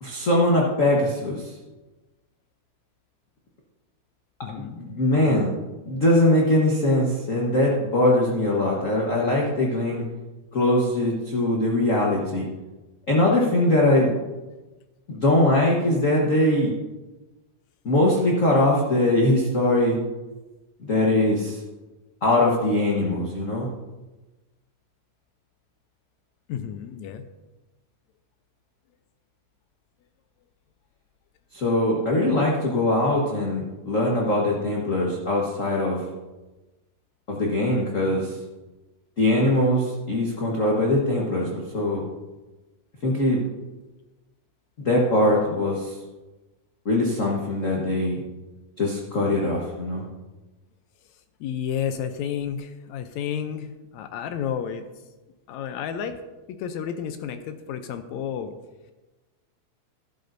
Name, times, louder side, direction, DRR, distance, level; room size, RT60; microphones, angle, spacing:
voice 1, 0.0-1.5 4.8-5.5 5.8-10.0 10.5-12.4 13.1-14.2 15.1-16.7 17.8-20.0 20.8-21.6 22.2-23.7 31.5-36.0 37.3-38.3 39.2-42.0 43.0-43.4 44.8-45.9 46.8-48.2 48.8-50.0, left 1 dB, 55° left, -3 dB, 0.8 m, -21 dB
voice 2, 4.4-4.8 5.1-5.4 26.5-27.3 51.4-54.8 55.5-56.2 56.5-58.5, left 8 dB, 75° left, 9 dB, 1.9 m, -31 dB
12.0 x 12.0 x 2.6 m, 1.1 s
omnidirectional pair, 3.4 m